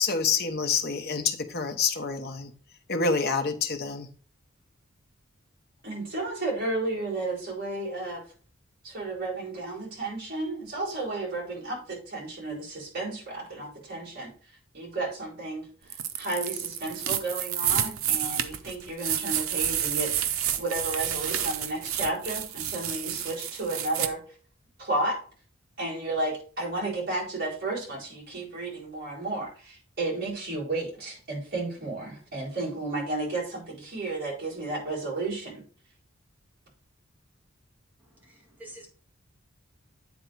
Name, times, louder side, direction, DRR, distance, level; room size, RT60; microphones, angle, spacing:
voice 1, 0.0-2.5 2.9-4.1, left 5 dB, 50° left, 6 dB, 1.0 m, -27 dB
voice 2, 5.8-8.2 8.8-14.3 14.7-15.7 16.2-20.3 20.6-24.2 24.8-25.2 25.8-35.6, right 2 dB, 50° right, -6 dB, 4.2 m, -32 dB
sound 1, 15.9-24.1, right 10 dB, 85° right, 0.7 m, -30 dB
voice 3, 38.2-38.9, right 1 dB, 10° right, -2 dB, 1.7 m, -47 dB
9.1 x 3.8 x 4.6 m, 0.40 s
head